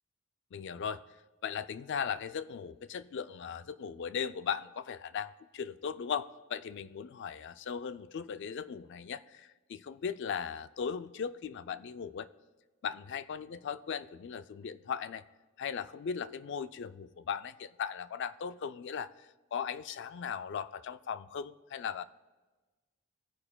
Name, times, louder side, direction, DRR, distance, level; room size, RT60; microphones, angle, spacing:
voice 1, 0.5-1.0 1.4-12.3 12.8-15.2 15.6-22.0, left 7 dB, 55° left, 14 dB, 0.3 m, -38 dB
18.0 x 9.7 x 2.2 m, 1.3 s
head